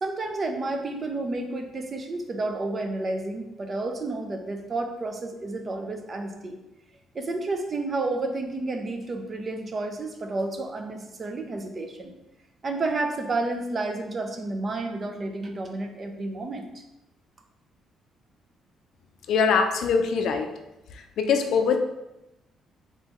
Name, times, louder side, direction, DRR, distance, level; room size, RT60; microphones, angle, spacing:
voice 1, 0.0-6.6 7.1-12.1 12.6-16.7, right 2 dB, 30° right, 4 dB, 0.5 m, -31 dB
voice 2, 19.3-20.5 20.9-21.8, left 5 dB, 60° left, 5 dB, 0.4 m, -23 dB
4.0 x 3.8 x 3.0 m, 0.92 s
cardioid pair, 170°, 0 cm